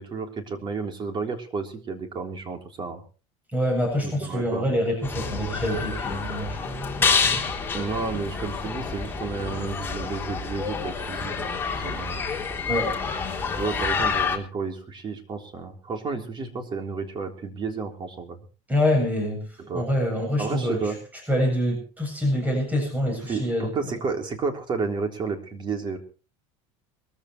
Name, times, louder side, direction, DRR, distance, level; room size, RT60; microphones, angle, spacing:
voice 1, 0.0-3.0 4.0-4.7 7.7-12.2 13.6-18.4 19.6-19.9 20.4-21.0 23.3-26.0, right 4 dB, 35° right, 4 dB, 3.6 m, -31 dB
voice 2, 3.5-7.4 12.7-12.9 18.7-19.4 19.7-20.9 21.3-23.7, equal, 10° right, 2 dB, 7.7 m, -26 dB
sound 1, 5.0-14.4, left 5 dB, 15° left, 3.3 m, -28 dB
23.0 x 14.5 x 3.2 m, 0.36 s
supercardioid pair, 125°, 15 cm